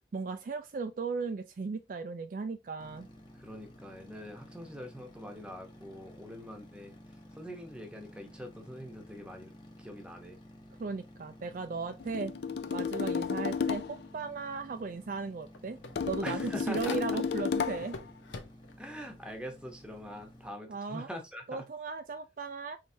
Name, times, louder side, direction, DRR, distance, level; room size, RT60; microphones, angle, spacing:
voice 1, 0.1-3.1 10.8-12.3 12.7-15.8 16.1-18.0 20.7-21.1 21.5-22.8, right 4 dB, 45° right, 0.3 m, -36 dB
sound 1, 2.8-20.5, equal, 25° left, 1.0 m, -53 dB
voice 2, 3.3-9.5 9.8-10.4 16.2-17.2 18.8-21.6, equal, 5° right, 0.9 m, -44 dB
sound 2, 12.0-14.1 15.9-18.0, left 6 dB, 60° left, 0.4 m, -33 dB
sound 3, 14.8-14.9 15.2-17.4 17.8-18.8, left 3 dB, 90° left, 0.8 m, -46 dB
4.7 x 3.2 x 2.7 m
head